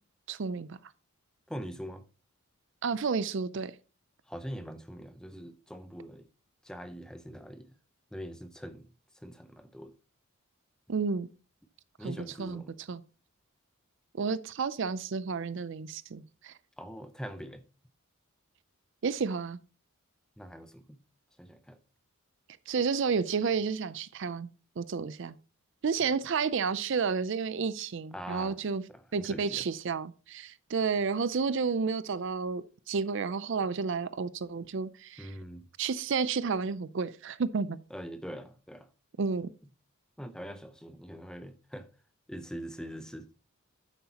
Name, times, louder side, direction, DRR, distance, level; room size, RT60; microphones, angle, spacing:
voice 1, 0.3-0.8 2.8-3.7 10.9-11.3 12.0-13.0 14.2-16.5 19.0-19.6 22.7-24.5 24.8-25.4 25.8-28.8 29.1-35.3 35.8-37.8 39.2-39.5, right 5 dB, 60° right, 0.4 m, -31 dB
voice 2, 1.5-2.0 4.3-6.3 6.6-7.7 8.1-8.9 9.1-9.9 12.0-12.7 16.8-17.6 20.4-21.0 21.4-21.8 28.1-28.6 28.9-29.6 35.2-35.6 37.9-38.9 40.2-41.9 42.3-43.3, equal, 5° left, 0.6 m, -43 dB
9.5 x 8.1 x 2.9 m
head